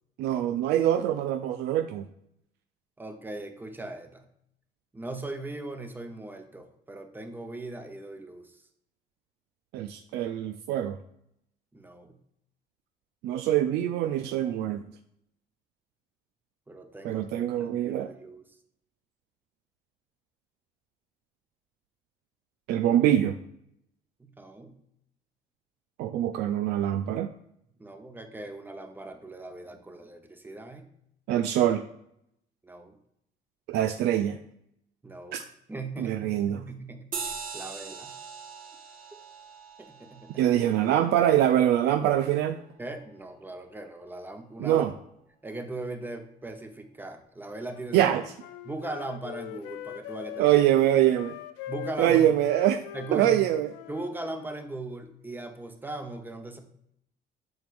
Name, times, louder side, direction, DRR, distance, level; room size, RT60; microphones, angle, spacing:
voice 1, 0.2-2.1 9.7-11.0 13.2-14.8 17.0-18.1 22.7-23.4 26.0-27.3 31.3-31.8 33.7-34.4 35.3-35.4 36.0-36.6 40.4-42.6 44.6-44.9 47.9-48.2 50.4-51.4 52.0-52.8 53.1-53.7, right 11 dB, 80° right, 8 dB, 0.4 m, -24 dB
voice 2, 3.0-4.2 4.9-8.6 11.7-12.2 16.7-18.4 24.4-24.8 27.8-30.9 32.6-33.0 35.0-35.4 35.7-38.1 39.8-40.5 42.8-44.9 45.4-48.1 48.6-50.5 51.7-52.4 52.9-53.4 53.9-56.6, right 2 dB, 10° right, 6 dB, 0.8 m, -39 dB
sound 1, 37.1-42.0, right 5 dB, 55° right, 1.4 m, -41 dB
Wind instrument woodwind instrument, 47.7-50.7 51.1-54.5, left 14 dB, 90° left, 0.4 m, -42 dB
7.8 x 5.4 x 2.5 m, 0.75 s
cardioid pair, 110°, 17 cm